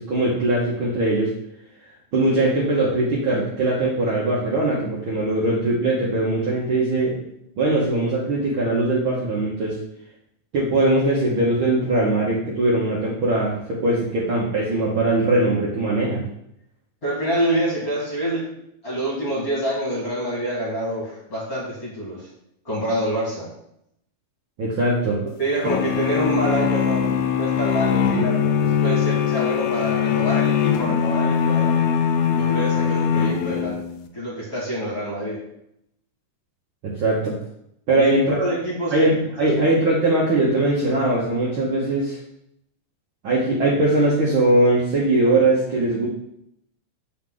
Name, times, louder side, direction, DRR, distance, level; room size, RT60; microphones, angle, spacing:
voice 1, 0.0-1.3 2.1-7.1 7.6-9.8 10.5-16.2 24.6-25.2 36.8-37.3 37.9-38.4 38.9-42.2 43.2-46.1, right 2 dB, 55° right, -5 dB, 1.5 m, -21 dB
voice 2, 17.0-18.5 18.8-22.3 22.7-23.5 25.4-31.8 32.3-35.4 37.9-39.1 39.4-39.5, right 1 dB, 35° left, -6 dB, 1.8 m, -26 dB
sound 1, 25.6-34.0, left 8 dB, 80° left, 1.8 m, -21 dB
7.2 x 4.6 x 3.8 m, 0.75 s
omnidirectional pair, 3.5 m